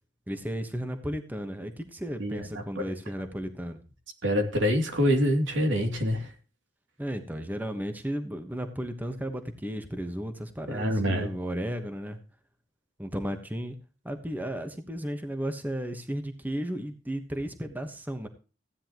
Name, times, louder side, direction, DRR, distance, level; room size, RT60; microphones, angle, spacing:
voice 1, 0.3-3.8 7.0-12.2 13.0-13.7 14.0-18.3, equal, 10° right, 7 dB, 1.2 m, -34 dB
voice 2, 2.2-2.8 4.2-6.3 10.7-11.3, equal, 85° right, 4 dB, 2.8 m, -26 dB
15.5 x 10.0 x 3.0 m, 0.35 s
head